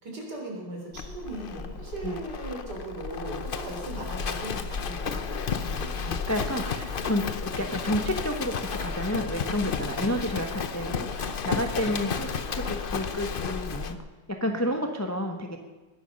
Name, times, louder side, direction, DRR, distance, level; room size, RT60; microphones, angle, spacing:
voice 1, 0.0-5.2 5.6-6.0 7.5-7.7 10.0-10.2 12.0-12.2 14.4-14.7, right 2 dB, 55° right, -1 dB, 4.3 m, -38 dB
Livestock farm animals working animals, 0.9-14.0, left 5 dB, 70° left, 0.5 m, -32 dB
voice 2, 5.7-14.0 14.4-15.6, left 1 dB, 10° left, 4 dB, 0.9 m, -30 dB
20.5 x 11.0 x 5.4 m, 1.3 s
omnidirectional pair, 2.1 m